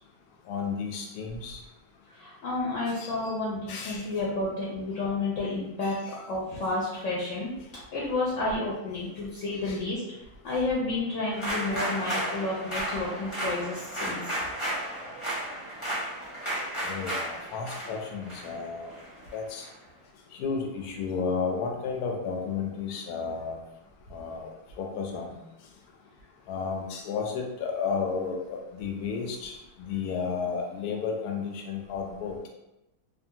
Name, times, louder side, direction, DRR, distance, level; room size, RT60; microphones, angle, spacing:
voice 1, 0.5-1.6 3.0-3.1 3.7-4.0 9.7-9.8 16.8-18.9 19.3-19.6 20.4-23.6 24.1-24.5 24.8-25.4 26.5-32.3, left 5 dB, 90° left, 2 dB, 1.1 m, -32 dB
voice 2, 2.1-7.5 7.9-10.0 10.4-14.4, left 2 dB, 65° left, -5 dB, 0.9 m, -31 dB
sound 1, 11.3-19.7, right 1 dB, 25° left, 0.8 m, -34 dB
2.7 x 2.4 x 2.7 m, 0.91 s
omnidirectional pair, 1.6 m